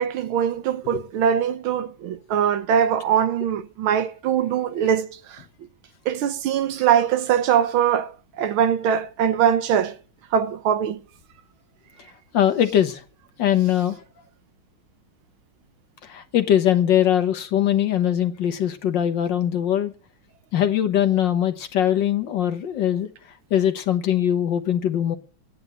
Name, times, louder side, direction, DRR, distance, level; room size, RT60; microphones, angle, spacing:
voice 1, 0.0-5.4 6.1-10.0 10.3-11.0, right 8 dB, 85° right, 1.8 m, -22 dB
voice 2, 12.3-13.0 13.4-14.0 16.0-19.9 20.5-23.1 23.5-25.2, left 10 dB, 65° left, 1.7 m, -21 dB
9.7 x 9.6 x 7.9 m
omnidirectional pair, 2.2 m